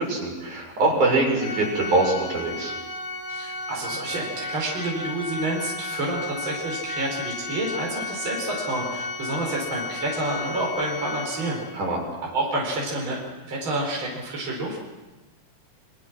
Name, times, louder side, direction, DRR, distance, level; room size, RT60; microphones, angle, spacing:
voice 1, 0.0-2.7 11.7-12.0, right 2 dB, 50° right, 0 dB, 7.7 m, -23 dB
Organ, 1.4-12.0, left 3 dB, 55° left, 6.4 m, -34 dB
voice 2, 3.3-11.6 12.3-13.2 13.4-14.8, right 2 dB, 30° right, -2 dB, 5.4 m, -29 dB
28.5 x 25.5 x 6.3 m, 1.1 s
omnidirectional pair, 4.7 m